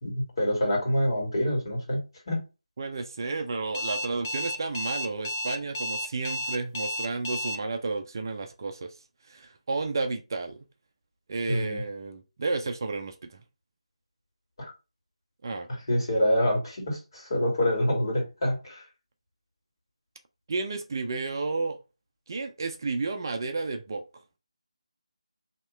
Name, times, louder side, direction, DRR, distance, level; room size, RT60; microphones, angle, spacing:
voice 1, 0.0-2.0 2.3-2.4 11.5-11.8 14.6-14.7 15.7-18.8, equal, 45° left, 2.2 m, -26 dB
voice 2, 2.8-8.9 9.3-10.6 11.3-13.4 15.4-15.7 20.5-21.8 22.3-24.0, right 3 dB, 35° right, 0.5 m, -32 dB
Alarm, 3.7-7.6, equal, 25° left, 0.4 m, -32 dB
2.9 x 2.9 x 4.4 m
figure-of-eight pair, 165°, 3 cm